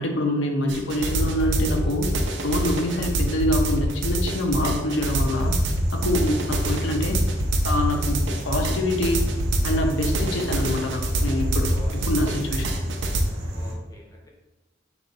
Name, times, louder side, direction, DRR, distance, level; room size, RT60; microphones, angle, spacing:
voice 1, 0.0-2.1 2.4-5.6 5.9-7.2 7.6-9.3 9.6-12.8, left 1 dB, 85° left, 3 dB, 0.7 m, -25 dB
sound 1, 0.7-13.2, right 1 dB, 70° right, 0.6 m, -25 dB
voice 2, 3.6-4.0 6.3-6.5 10.0-10.3 11.7-12.3 13.5-14.3, left 1 dB, 20° left, -1 dB, 0.6 m, -46 dB
sound 2, 5.1-13.7, equal, 50° right, 1.0 m, -32 dB
5.0 x 2.6 x 3.9 m, 1.1 s
head